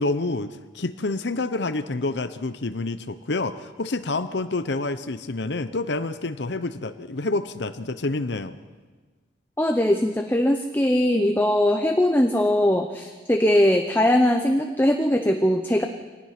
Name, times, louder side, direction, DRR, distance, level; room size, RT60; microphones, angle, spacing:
voice 1, 0.0-8.6, left 2 dB, 70° left, 11 dB, 0.8 m, -28 dB
voice 2, 9.6-15.8, left 1 dB, 10° left, 4 dB, 0.9 m, -20 dB
25.0 x 19.0 x 5.9 m, 1.4 s
head